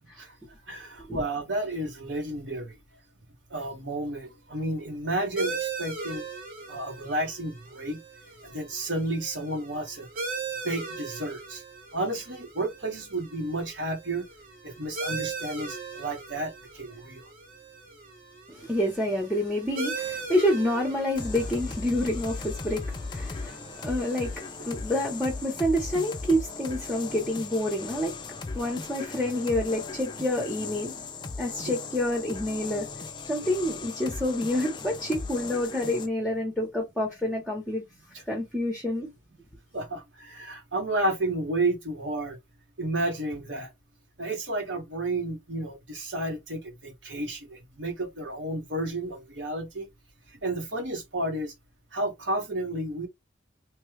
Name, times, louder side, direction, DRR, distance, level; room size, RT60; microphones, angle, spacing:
voice 1, 0.7-2.8 3.5-6.3 6.7-8.0 8.4-10.1 10.6-11.6 11.9-14.2 14.6-17.3 39.7-42.4 42.8-43.7 44.2-49.9 50.4-51.5 51.9-53.1, right 2 dB, 80° right, 1.4 m, -31 dB
sound 1, 5.4-24.5, right 4 dB, 45° right, 1.1 m, -39 dB
voice 2, 18.5-28.2 28.5-31.0 31.4-32.9 33.3-37.8 38.3-39.1, left 1 dB, ahead, 0.8 m, -28 dB
sound 2, 21.1-36.1, left 4 dB, 25° left, 0.4 m, -37 dB
3.2 x 2.3 x 3.2 m
head